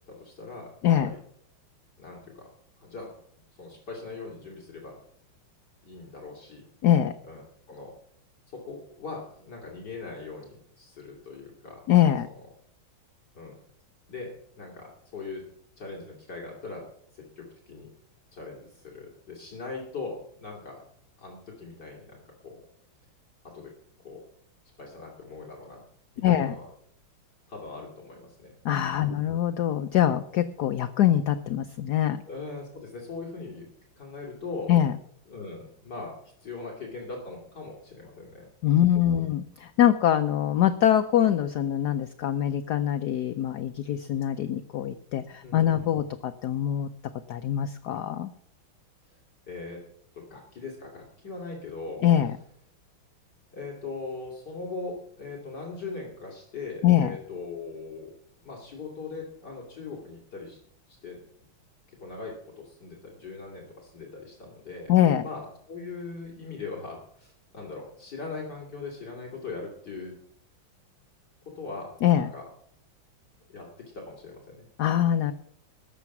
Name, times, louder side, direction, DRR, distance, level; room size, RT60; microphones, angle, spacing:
voice 1, 0.1-0.7 1.0-1.2 2.0-2.5 2.8-3.1 3.5-5.0 5.8-6.6 7.2-7.9 8.5-11.8 13.3-13.6 14.1-14.3 14.6-15.4 15.8-16.8 17.1-17.9 18.3-20.8 21.2-22.6 23.4-23.7 24.0-24.2 24.8-25.8 26.2-26.6 27.5-28.6 32.3-33.7 34.0-34.7 35.3-36.1 36.4-38.5 38.9-39.2 45.4-46.0 49.1-49.2 49.5-49.8 50.1-52.0 53.5-58.1 58.4-60.6 61.0-61.2 62.0-64.9 65.2-70.1 71.6-72.5 73.5-73.7 73.9-74.7, left 3 dB, 50° left, -2 dB, 3.1 m, -40 dB
voice 2, 6.8-7.1 11.9-12.3 26.2-26.5 28.6-32.2 34.7-34.9 38.6-46.9 47.3-48.3 52.0-52.3 56.8-57.1 64.9-65.2 72.0-72.3 74.8-75.3, left 11 dB, 70° left, 10 dB, 1.0 m, -23 dB
19.0 x 7.3 x 6.0 m, 0.67 s
omnidirectional pair, 2.3 m